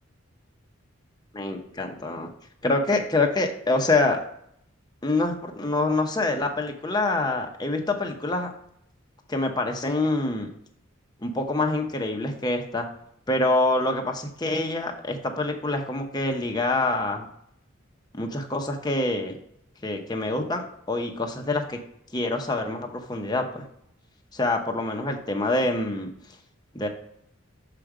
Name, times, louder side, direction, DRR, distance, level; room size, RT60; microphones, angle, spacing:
voice 1, 1.3-2.3 2.6-4.2 5.0-8.5 9.3-10.5 11.2-12.9 13.3-17.3 18.1-19.4 19.8-21.8 22.1-23.6 24.3-26.1 26.7-26.9, left 2 dB, 20° left, 3 dB, 0.9 m, -26 dB
6.8 x 5.1 x 4.9 m, 0.71 s
head